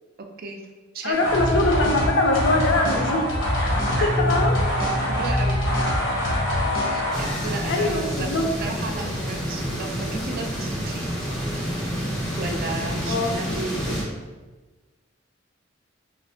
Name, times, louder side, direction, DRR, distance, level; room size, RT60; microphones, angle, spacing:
voice 1, 0.2-0.6 0.9-1.2 3.9-4.2 5.2-5.6 6.9-8.3 8.6-11.0 12.4-13.9, right 3 dB, 50° right, 4 dB, 0.4 m, -34 dB
voice 2, 1.0-3.2 3.6-3.7 4.0-4.6 7.7-8.5 13.0-13.6 13.9-14.0, left 2 dB, 65° left, 2 dB, 0.5 m, -23 dB
sound 1, 1.1-7.6, left 1 dB, 85° left, 0.8 m, -24 dB
sound 2, 7.1-14.0, equal, 5° left, 0.6 m, -29 dB
4.4 x 2.0 x 2.7 m, 1.2 s
head